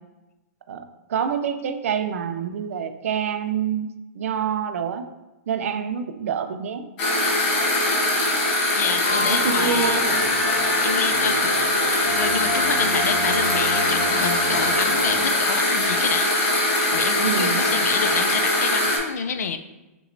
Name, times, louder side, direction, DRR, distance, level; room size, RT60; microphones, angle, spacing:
voice 1, 0.7-5.1 5.5-6.8 9.2-10.5 17.2-17.7, right 7 dB, 60° right, 8 dB, 0.5 m, -27 dB
sound 1, 7.0-19.0, left 2 dB, 30° left, 1.1 m, -22 dB
voice 2, 8.8-10.0 10.8-19.6, left 6 dB, 90° left, 9 dB, 0.5 m, -29 dB
sound 2, 9.0-15.6, left 1 dB, 70° left, 1.3 m, -29 dB
6.0 x 3.0 x 2.6 m, 1.0 s
hypercardioid pair, 170°, 8 cm